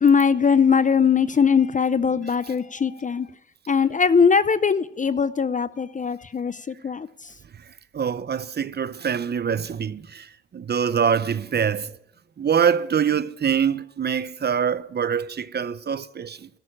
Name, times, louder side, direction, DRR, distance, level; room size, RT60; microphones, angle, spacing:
voice 1, 0.0-3.3 3.7-7.1, left 6 dB, 25° left, 0.5 m, -20 dB
voice 2, 7.9-10.3 10.5-11.9 12.4-16.5, right 7 dB, 35° right, 0.6 m, -24 dB
13.5 x 6.4 x 9.8 m
cardioid pair, 90°, 30 cm